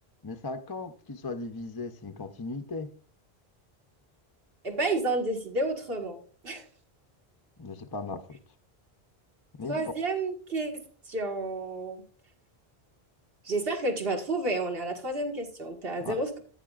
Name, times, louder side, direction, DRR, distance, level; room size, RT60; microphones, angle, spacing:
voice 1, 0.2-2.9 7.6-8.4 9.6-9.9 16.0-16.2, left 3 dB, 30° left, 0.5 m, -37 dB
voice 2, 4.6-6.2 6.4-6.6 9.7-12.0 13.4-16.4, right 2 dB, 65° right, 2.0 m, -30 dB
15.0 x 9.5 x 2.4 m
omnidirectional pair, 1.0 m